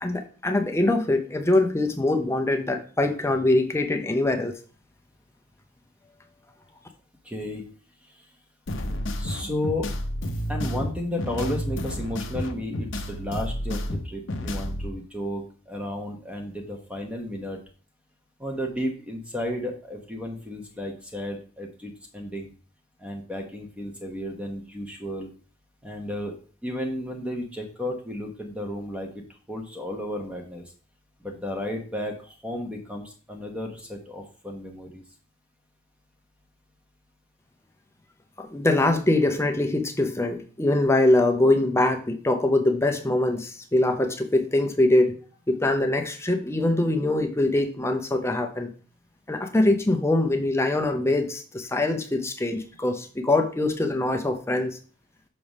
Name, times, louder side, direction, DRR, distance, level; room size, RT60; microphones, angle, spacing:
voice 1, 0.0-4.5 38.4-45.1 45.5-48.7 49.3-54.8, left 2 dB, 10° left, 5 dB, 0.6 m, -23 dB
voice 2, 7.2-7.7 8.1-8.2 9.2-9.9 10.5-17.6 18.4-22.5 23.0-25.3 25.8-26.4 26.6-29.2 29.5-30.6 31.2-35.0, left 1 dB, 5° right, 2 dB, 1.0 m, -33 dB
sound 1, 8.7-14.9, equal, 60° left, 0.7 m, -31 dB
6.0 x 3.5 x 5.2 m, 0.40 s
head